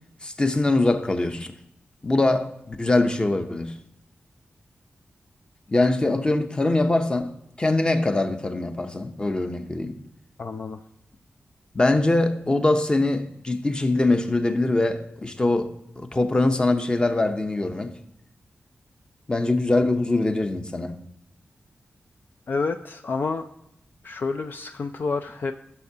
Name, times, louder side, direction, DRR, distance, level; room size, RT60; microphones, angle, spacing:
voice 1, 0.2-1.5 2.0-3.7 5.7-10.0 11.7-15.7 16.0-17.9 19.3-21.0, left 2 dB, 20° left, 0.8 m, -23 dB
voice 2, 10.4-10.8 22.5-23.5 24.0-25.5, left 4 dB, 50° left, 0.4 m, -29 dB
15.0 x 6.7 x 2.8 m
wide cardioid pair, 100°, 4 cm